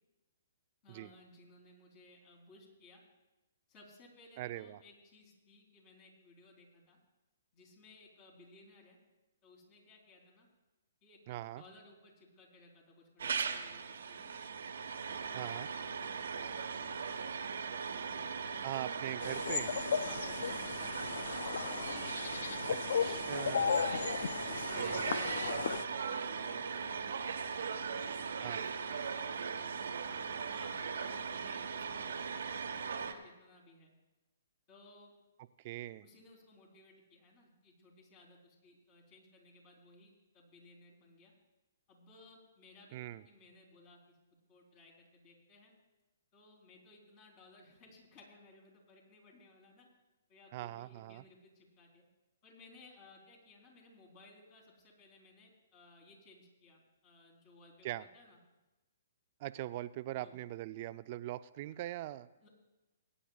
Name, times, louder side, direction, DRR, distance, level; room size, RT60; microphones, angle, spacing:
voice 1, 0.8-3.0 3.7-7.0 7.5-9.0 9.4-10.5 11.0-14.4 15.0-18.7 19.9-23.3 23.9-27.6 27.9-30.1 30.5-33.9 34.7-35.1 36.0-41.3 41.9-44.2 44.5-45.7 46.3-49.9 50.3-52.0 52.4-58.4 60.2-60.4 62.4-62.5, left 2 dB, 35° left, 0 dB, 3.5 m, -60 dB
voice 2, 4.4-4.8 11.3-11.6 15.3-15.7 18.6-19.7 22.7-23.9 24.8-25.2 25.5-25.6 28.4-28.6 35.6-36.0 42.9-43.2 50.5-51.2 57.8-58.0 59.4-62.3, right 15 dB, 40° right, 15 dB, 0.4 m, -42 dB
sound 1, 13.2-33.1, right 6 dB, 75° right, 1.1 m, -39 dB
sound 2, 19.2-25.8, left 7 dB, 65° left, 0.5 m, -36 dB
21.5 x 9.9 x 2.4 m, 1.1 s
hypercardioid pair, 135°, 0 cm